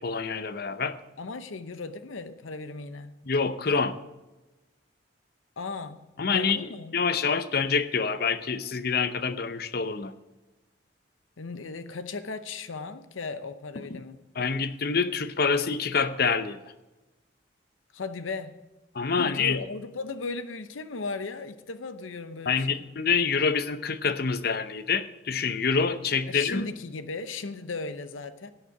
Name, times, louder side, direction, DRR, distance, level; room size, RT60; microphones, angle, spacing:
voice 1, 0.0-1.0 3.2-4.0 6.2-10.1 13.9-14.0 14.4-16.6 18.9-19.6 22.5-26.7, left 5 dB, 50° left, 12 dB, 0.7 m, -26 dB
voice 2, 1.2-3.2 5.6-6.1 6.3-6.9 11.4-14.2 17.9-18.5 19.1-22.8 26.3-28.5, left 3 dB, 90° left, 11 dB, 0.8 m, -36 dB
17.0 x 6.6 x 4.8 m, 1.1 s
head